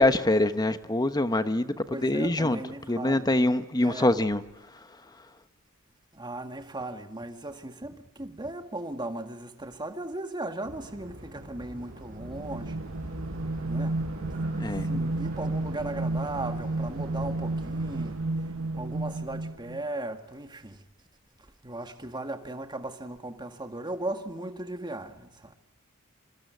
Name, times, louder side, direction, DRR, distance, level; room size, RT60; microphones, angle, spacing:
voice 1, 0.0-1.7 2.0-2.6 2.9-4.4 14.6-14.9, left 1 dB, 20° left, 1.0 m, -24 dB
voice 2, 1.9-3.3 3.8-4.1 6.1-12.8 13.7-14.0 14.8-18.2 18.7-20.8 21.6-25.6, right 2 dB, 20° right, 1.8 m, -37 dB
sound 1, 10.6-18.1, right 1 dB, 40° right, 6.1 m, -42 dB
sound 2, 12.2-19.8, right 2 dB, 70° right, 1.4 m, -32 dB
26.0 x 23.5 x 9.4 m
head